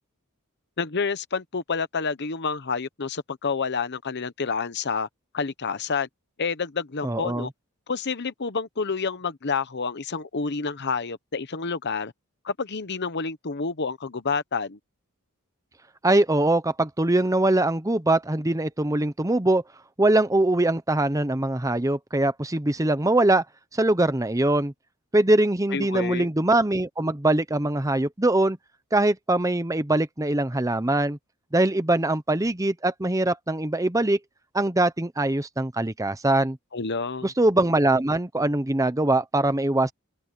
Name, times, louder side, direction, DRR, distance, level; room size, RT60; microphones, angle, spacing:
voice 1, 0.8-5.1 5.3-6.1 6.4-7.5 7.9-12.1 12.4-14.8 25.7-26.3 36.7-37.3, left 5 dB, 50° left, 0.9 m, -29 dB
voice 2, 7.0-7.5 16.0-19.6 20.0-23.4 23.7-24.7 25.1-28.6 28.9-31.2 31.5-34.2 34.5-36.6 37.2-39.9, right 2 dB, 15° right, 0.8 m, -22 dB
open air
head